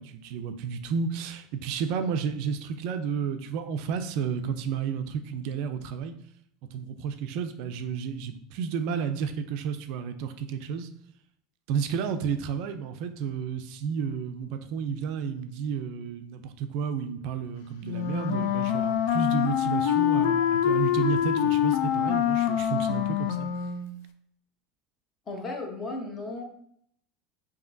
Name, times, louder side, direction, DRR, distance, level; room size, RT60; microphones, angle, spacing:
voice 1, 0.0-6.1 6.7-10.9 11.7-23.5, right 6 dB, 60° right, 8 dB, 0.4 m, -31 dB
Wind instrument woodwind instrument, 17.8-23.9, left 9 dB, 75° left, 0.4 m, -25 dB
voice 2, 25.3-26.4, left 2 dB, 25° left, 3 dB, 0.7 m, -35 dB
5.0 x 2.7 x 2.5 m, 0.68 s
supercardioid pair, 145°, 0 cm